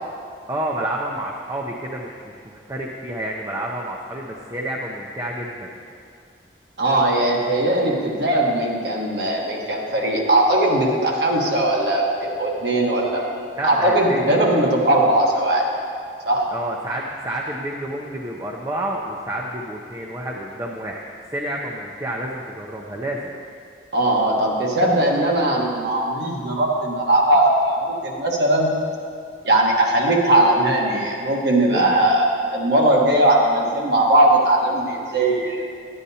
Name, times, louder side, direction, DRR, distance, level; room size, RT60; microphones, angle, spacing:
voice 1, 0.5-5.7 13.5-14.5 16.5-21.0 21.3-23.3 31.7-32.1, right 1 dB, 20° right, -2 dB, 0.5 m, -29 dB
voice 2, 6.8-13.3 13.6-15.7 16.2-16.5 23.9-28.7 29.4-32.2 32.5-35.6, right 1 dB, 65° right, -1 dB, 1.2 m, -19 dB
10.5 x 9.9 x 2.7 m, 2.3 s
head